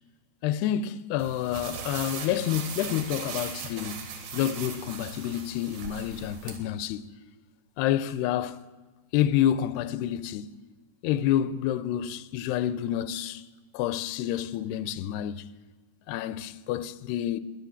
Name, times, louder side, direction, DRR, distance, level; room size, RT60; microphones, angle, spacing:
voice 1, 0.4-7.1 7.8-8.6 9.1-10.5 11.0-13.4 13.7-15.5 16.1-17.4, left 11 dB, 85° left, 2.6 m, -28 dB
sound 1, 1.2-6.6, right 6 dB, 70° right, 3.3 m, -39 dB
16.5 x 10.5 x 7.1 m
omnidirectional pair, 4.5 m